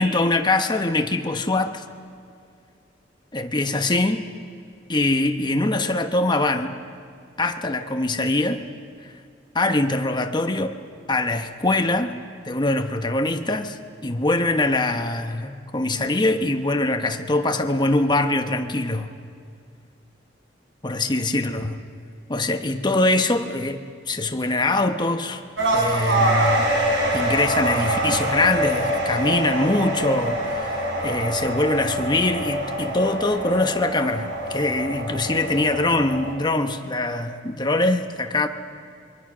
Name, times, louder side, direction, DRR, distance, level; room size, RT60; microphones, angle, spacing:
voice 1, 0.0-1.8 3.3-4.3 4.9-6.7 7.4-8.6 9.5-10.8 11.1-12.2 12.4-13.8 14.0-19.1 20.8-21.8 22.3-25.4 25.7-26.7 27.1-38.5, left 2 dB, 25° left, 6 dB, 1.2 m, -23 dB
sound 1, 25.6-36.3, right 1 dB, 80° right, 4.9 m, -25 dB
26.5 x 23.0 x 6.3 m, 2.3 s
head